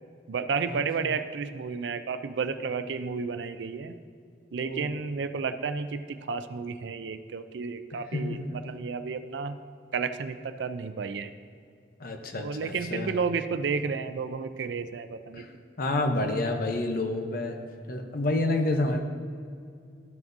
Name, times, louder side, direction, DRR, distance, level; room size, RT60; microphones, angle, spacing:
voice 1, 0.3-3.9 4.5-9.6 9.9-11.3 12.4-15.5, right 5 dB, 85° right, 10 dB, 0.4 m, -32 dB
voice 2, 4.5-5.0 7.9-8.8 12.0-13.1 15.3-15.5 15.8-17.6 17.9-19.0, left 2 dB, 55° left, 5 dB, 0.8 m, -29 dB
13.0 x 5.9 x 2.7 m, 2.3 s
head